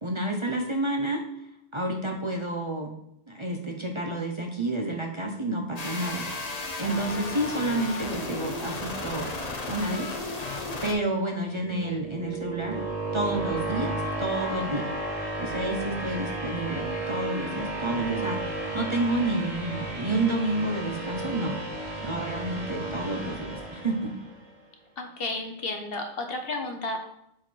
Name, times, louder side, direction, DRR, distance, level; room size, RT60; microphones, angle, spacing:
voice 1, 0.0-1.2 1.7-2.9 3.3-6.3 6.8-9.3 9.7-10.1 10.8-12.8 13.1-13.9 14.2-14.9 15.4-21.6 22.0-24.1, right 2 dB, 30° right, 1 dB, 0.7 m, -29 dB
sound 1, 5.8-10.9, left 2 dB, 40° left, 0.9 m, -34 dB
sound 2, 11.5-24.5, right 2 dB, 90° right, 2.2 m, -33 dB
voice 2, 25.0-27.0, left 2 dB, 60° left, 4 dB, 1.2 m, -32 dB
7.5 x 4.5 x 4.5 m, 0.77 s
omnidirectional pair, 1.2 m